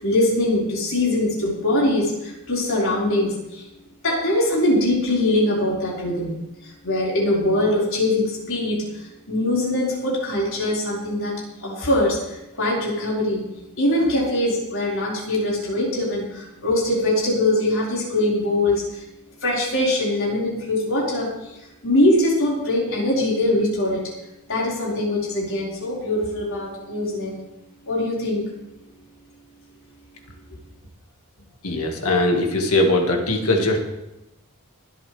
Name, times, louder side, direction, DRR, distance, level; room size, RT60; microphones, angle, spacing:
voice 1, 0.0-3.7 4.0-6.3 6.6-11.3 11.6-13.5 13.8-19.0 19.4-21.6 21.8-24.0 24.5-27.4 27.8-28.4, left 1 dB, 65° left, -6 dB, 5.3 m, -22 dB
voice 2, 31.6-33.8, left 2 dB, 80° left, 2 dB, 2.1 m, -20 dB
24.5 x 8.3 x 3.5 m, 0.94 s
head